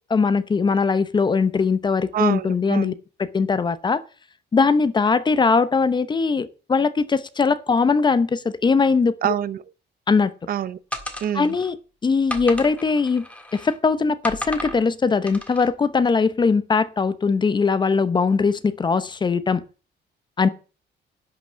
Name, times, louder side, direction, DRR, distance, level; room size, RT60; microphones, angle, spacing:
voice 1, 0.1-2.9 3.2-4.0 4.5-9.2 10.1-10.3 11.3-11.7 12.0-13.2 13.5-19.6 20.4-20.5, left 4 dB, 25° left, 0.7 m, -20 dB
voice 2, 2.1-2.9 9.2-9.6 10.5-10.8 11.2-11.6, right 10 dB, 50° right, 0.7 m, -25 dB
sound 1, 10.9-11.7 12.3-13.8 14.2-14.8 15.3-15.7, left 1 dB, 5° left, 1.7 m, -33 dB
11.0 x 6.1 x 7.9 m
cardioid pair, 160°, 19 cm